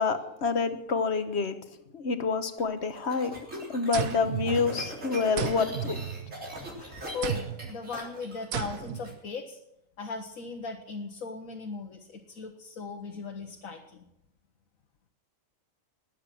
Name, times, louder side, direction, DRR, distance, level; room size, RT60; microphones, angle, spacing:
voice 1, 0.0-1.5 1.9-3.3 3.7-6.0, left 5 dB, 55° left, 9 dB, 1.3 m, -27 dB
sound 1, 2.6-9.1, right 1 dB, 65° right, 3.9 m, -41 dB
sound 2, 3.9-5.0 5.4-6.6 7.2-7.8 8.5-9.1, right 9 dB, 90° right, 1.3 m, -34 dB
voice 2, 7.1-9.6 10.0-14.1, left 4 dB, 85° left, 2 dB, 1.6 m, -38 dB
20.0 x 8.1 x 6.1 m, 0.79 s
omnidirectional pair, 1.4 m